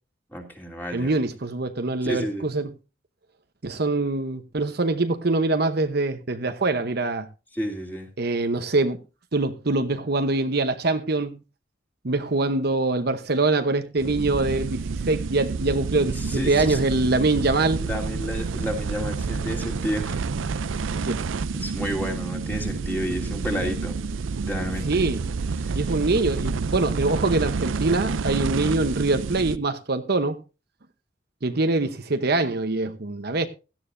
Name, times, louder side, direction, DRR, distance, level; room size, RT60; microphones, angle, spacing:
voice 1, 0.3-1.1 2.0-2.5 7.5-8.1 16.1-16.8 17.8-20.7 21.6-24.0 24.5-25.0 25.6-25.8, equal, 10° left, 2.9 m, -31 dB
voice 2, 0.9-2.7 3.6-7.3 8.2-9.0 9.3-11.4 12.0-17.8 21.1-21.2 24.9-25.2 25.7-30.4 31.4-33.5, right 2 dB, 55° right, 0.9 m, -24 dB
sound 1, 14.0-29.6, right 4 dB, 80° right, 0.5 m, -29 dB
17.0 x 13.0 x 2.6 m
head